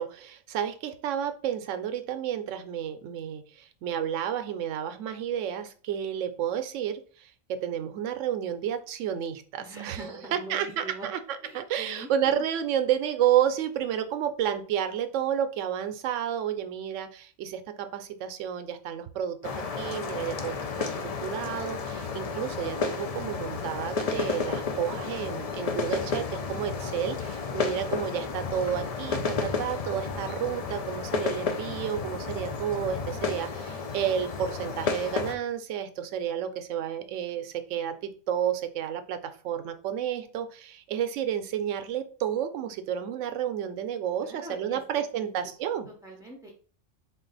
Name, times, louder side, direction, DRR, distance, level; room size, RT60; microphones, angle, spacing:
voice 1, 0.0-10.0 10.3-11.2 11.5-39.2 39.4-45.9, right 9 dB, 75° right, 9 dB, 0.9 m, -31 dB
voice 2, 9.6-11.1 11.4-12.4 44.2-44.8 45.1-45.3 45.9-46.5, right 2 dB, 5° right, -2 dB, 0.4 m, -43 dB
sound 1, 19.4-35.3, left 5 dB, 70° left, 0.3 m, -32 dB
4.0 x 2.4 x 3.9 m, 0.40 s
omnidirectional pair, 1.3 m